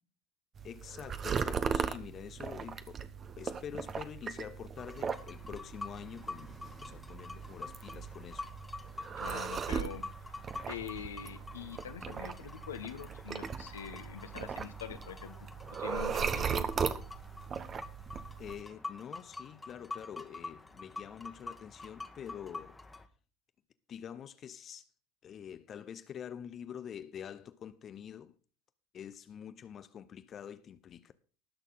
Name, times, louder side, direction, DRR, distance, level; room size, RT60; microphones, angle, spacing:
voice 1, 0.6-3.1 3.4-8.5 18.4-22.8 23.9-24.9 25.2-28.3 28.9-31.1, left 8 dB, 40° left, 0.8 m, -46 dB
sound 1, 0.6-18.6, right 6 dB, 30° right, 1.1 m, -38 dB
sound 2, 4.8-23.1, left 3 dB, 15° left, 1.5 m, -47 dB
voice 2, 9.2-10.0 10.7-15.3 15.8-16.7, left 8 dB, 80° left, 1.2 m, -44 dB
19.5 x 6.5 x 4.0 m
hypercardioid pair, 75°, 0 cm